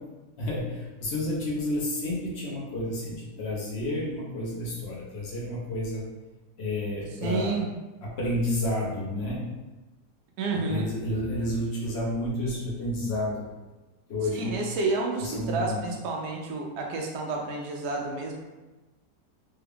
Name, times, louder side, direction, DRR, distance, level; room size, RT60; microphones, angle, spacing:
voice 1, 0.4-6.0 6.6-7.6 8.0-9.5 10.7-13.4 14.1-14.6 15.2-15.8, left 1 dB, 50° left, -4 dB, 0.8 m, -30 dB
voice 2, 7.2-7.7 10.4-10.9 14.3-18.3, right 3 dB, 75° right, 0 dB, 1.1 m, -30 dB
3.4 x 2.3 x 3.4 m, 1.1 s
omnidirectional pair, 1.7 m